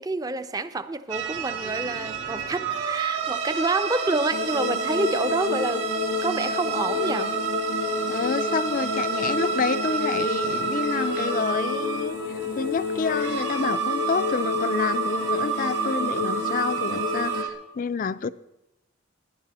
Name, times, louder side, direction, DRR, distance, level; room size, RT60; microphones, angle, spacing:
voice 1, 0.0-5.9 6.2-7.4 9.2-9.5 18.2-18.3, right 3 dB, 20° right, 12 dB, 0.5 m, -28 dB
sound 1, 1.1-17.5, right 5 dB, 65° right, 2.0 m, -29 dB
sound 2, 4.3-17.4, left 5 dB, 80° left, 0.9 m, -30 dB
voice 2, 8.1-12.2 12.6-18.3, left 5 dB, 40° left, 16 dB, 0.3 m, -28 dB
17.5 x 10.5 x 4.2 m, 0.92 s
head